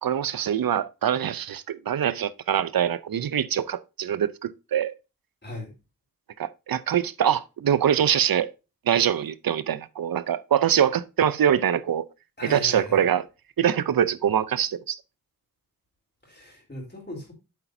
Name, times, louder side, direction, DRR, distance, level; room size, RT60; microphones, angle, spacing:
voice 1, 0.0-4.9 6.4-8.5 8.9-12.1 12.5-13.3 13.6-15.0, right 9 dB, 85° right, 0.6 m, -24 dB
voice 2, 5.4-5.8 11.4-11.5 12.4-13.1 16.2-17.3, left 1 dB, 30° left, 3.5 m, -38 dB
8.3 x 7.1 x 2.6 m
wide cardioid pair, 65°, 34 cm